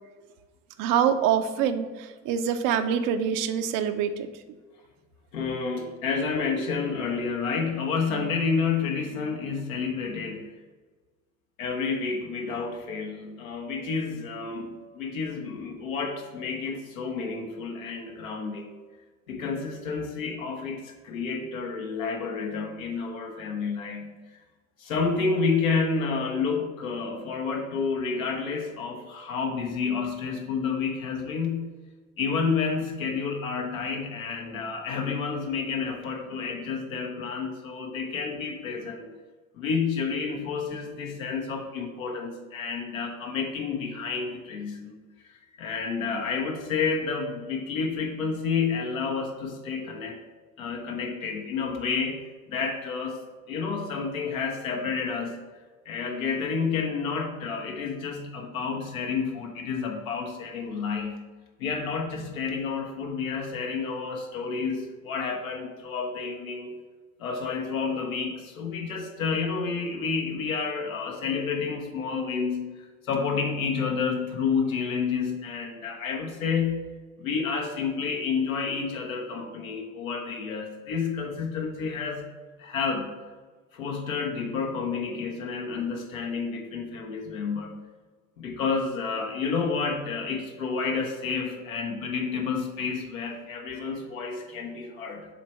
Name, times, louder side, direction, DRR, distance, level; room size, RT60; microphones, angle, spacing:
voice 1, 0.8-4.3, right 8 dB, 50° right, 9 dB, 0.6 m, -25 dB
voice 2, 5.3-10.5 11.6-18.7 19.3-24.1 24.8-31.7 32.2-39.1 39.5-44.9 45.6-50.2 50.6-55.4 55.8-61.2 61.6-66.8 67.2-76.8 77.2-82.3 82.6-83.1 83.7-87.7 88.4-95.3, left 5 dB, 75° left, 1 dB, 1.2 m, -30 dB
7.0 x 3.3 x 4.4 m, 1.3 s
hypercardioid pair, 65°, 41 cm